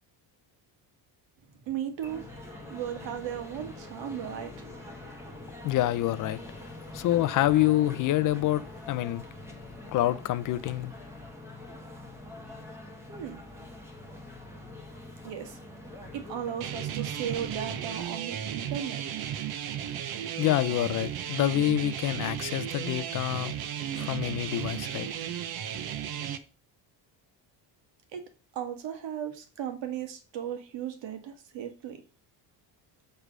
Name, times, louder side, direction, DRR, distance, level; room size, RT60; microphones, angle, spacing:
voice 1, 1.7-2.2 2.7-4.5 13.1-13.4 15.2-15.6 16.1-19.0 28.1-28.2 28.5-32.0, right 9 dB, 75° right, 1.6 m, -36 dB
sound 1, 2.0-18.1, left 2 dB, 5° right, 1.0 m, -44 dB
voice 2, 5.6-6.4 6.9-9.2 9.9-10.9 20.4-23.5 23.9-25.1, left 14 dB, 45° left, 0.4 m, -27 dB
sound 2, 16.6-26.4, right 10 dB, 55° right, 0.7 m, -34 dB
6.7 x 3.3 x 6.1 m
cardioid pair, 170°, 44 cm